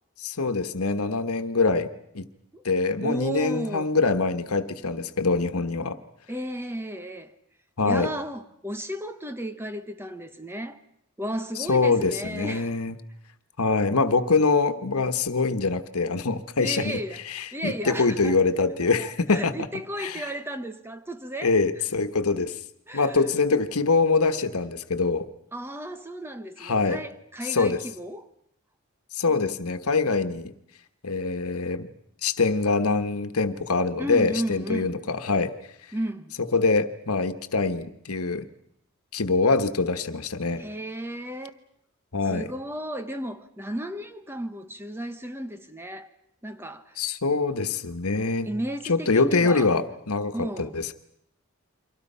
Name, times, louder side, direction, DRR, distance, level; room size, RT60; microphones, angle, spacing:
voice 1, 0.2-1.9 2.1-2.3 2.6-6.0 7.8-8.1 11.7-12.9 13.6-17.0 17.3-19.5 20.0-20.3 21.4-22.6 22.9-25.3 26.6-27.0 27.4-27.8 29.1-30.5 31.0-31.9 32.2-35.5 36.5-38.5 39.1-40.6 42.1-42.5 47.0-48.5 48.9-50.9, left 4 dB, 90° left, 1.3 m, -24 dB
voice 2, 3.0-3.9 6.3-7.3 7.8-10.8 11.2-12.7 16.6-17.2 17.5-18.4 19.0-21.6 22.9-23.3 25.5-28.3 34.0-35.0 35.9-36.4 40.6-41.6 42.3-46.1 46.4-47.1 48.4-49.8 50.3-50.7, equal, 10° right, 1.0 m, -34 dB
29.5 x 24.0 x 5.6 m
head